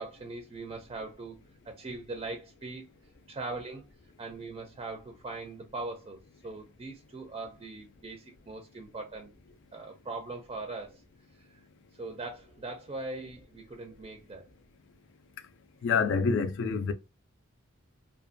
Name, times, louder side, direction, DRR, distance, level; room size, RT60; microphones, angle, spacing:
voice 1, 0.0-1.4 1.6-2.9 3.3-3.8 4.2-6.2 6.4-9.3 9.7-11.0 11.4-11.6 12.0-14.4, right 3 dB, 25° right, 0.4 m, -40 dB
voice 2, 15.8-16.9, left 5 dB, 65° left, 0.4 m, -26 dB
2.5 x 2.2 x 2.5 m
head